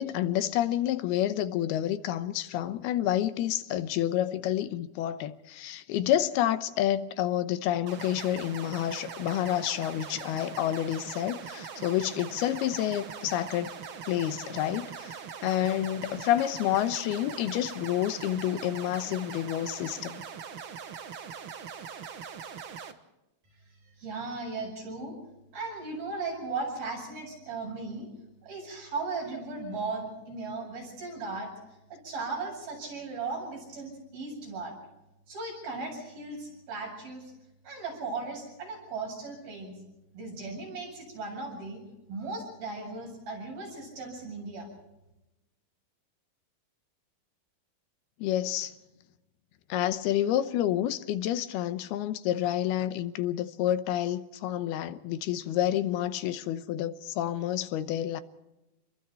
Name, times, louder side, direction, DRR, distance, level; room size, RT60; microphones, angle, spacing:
voice 1, 0.0-13.8 14.1-15.2 15.4-20.2 48.2-48.8 49.7-58.2, left 12 dB, 90° left, 2.9 m, -29 dB
sound 1, 7.9-22.9, right 7 dB, 90° right, 1.1 m, -42 dB
voice 2, 23.8-25.2 25.5-28.1 28.4-31.5 31.9-34.7 35.3-37.3 37.6-39.7 40.1-41.8 42.1-44.7, right 3 dB, 70° right, 9.6 m, -37 dB
28.0 x 22.0 x 4.5 m
omnidirectional pair, 4.4 m